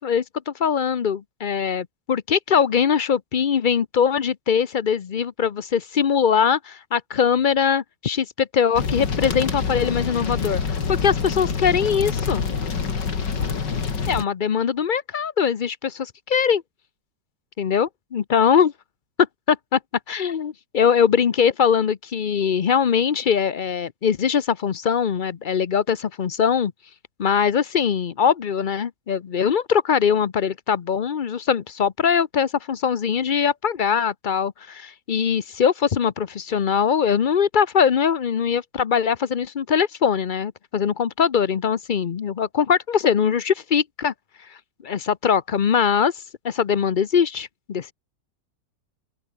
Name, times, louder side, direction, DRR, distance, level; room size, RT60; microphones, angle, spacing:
voice 1, 0.0-12.5 14.1-16.6 17.6-18.7 19.5-19.8 20.1-26.7 27.2-44.1 44.8-46.1 46.4-47.9, left 7 dB, 60° left, 0.5 m, -22 dB
sound 1, 8.7-14.2, left 5 dB, 80° left, 3.1 m, -26 dB
open air
omnidirectional pair, 1.9 m